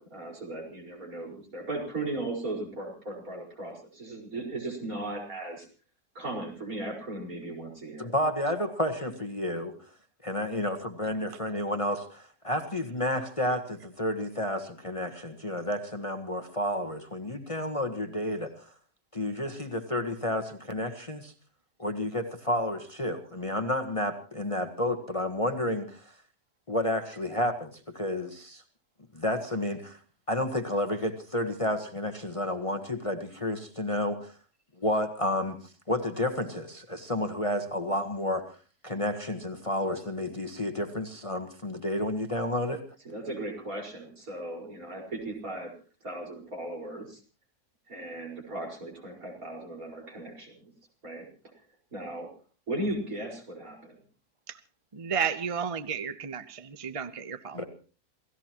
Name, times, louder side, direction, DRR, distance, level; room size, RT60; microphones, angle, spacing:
voice 1, 0.0-5.7 6.2-8.1 43.1-45.7 46.0-47.2 47.9-50.7 51.0-51.3 51.9-52.3 52.7-54.0, right 2 dB, 65° right, -1 dB, 5.4 m, -37 dB
voice 2, 8.0-9.7 10.2-18.7 19.1-21.3 21.8-26.1 26.7-28.6 29.1-30.0 30.3-34.3 34.7-35.6 35.9-38.4 38.8-42.8 57.5-57.6, left 1 dB, 25° left, 6 dB, 1.3 m, -31 dB
voice 3, 54.9-57.6, right 7 dB, 30° right, 11 dB, 0.7 m, -32 dB
28.5 x 16.0 x 3.0 m, 0.37 s
omnidirectional pair, 1.6 m